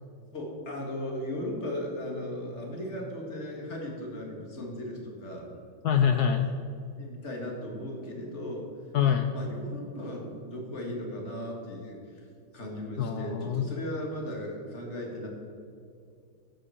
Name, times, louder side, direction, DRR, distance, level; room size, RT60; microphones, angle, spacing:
voice 1, 0.3-5.5 7.0-8.7 9.3-12.2 12.5-15.3, left 1 dB, 35° left, 0 dB, 2.2 m, -37 dB
voice 2, 5.8-6.4 8.9-9.3 13.0-13.7, left 8 dB, 75° left, 6 dB, 0.9 m, -24 dB
9.2 x 7.7 x 7.2 m, 2.5 s
omnidirectional pair, 2.3 m